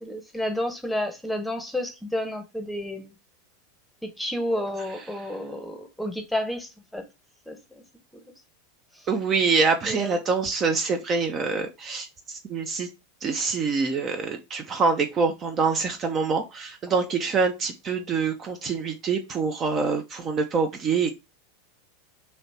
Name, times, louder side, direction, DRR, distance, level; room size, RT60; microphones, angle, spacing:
voice 1, 0.0-3.1 4.0-7.0 7.5-7.8 8.1-8.2 9.9-10.2, left 1 dB, ahead, 0.9 m, -31 dB
voice 2, 9.1-12.9 13.2-21.1, right 4 dB, 30° right, 0.6 m, -25 dB
3.2 x 2.8 x 4.1 m
figure-of-eight pair, 85°, 0 cm